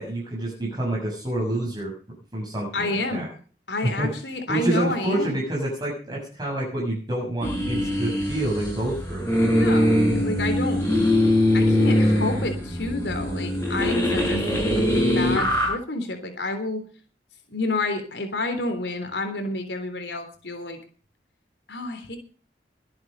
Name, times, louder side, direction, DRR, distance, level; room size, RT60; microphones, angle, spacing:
voice 1, 0.0-1.9 2.3-3.3 3.8-4.1 4.5-9.3, right 1 dB, 25° right, -4 dB, 6.9 m, -27 dB
voice 2, 2.7-3.3 3.7-5.4 9.5-10.9 11.5-14.4 14.7-16.8 17.5-20.8 21.7-22.2, left 2 dB, 85° left, 7 dB, 3.5 m, -29 dB
sound 1, 7.4-15.7, left 1 dB, 15° left, 6.9 m, -22 dB
22.5 x 8.7 x 5.5 m, 0.41 s
head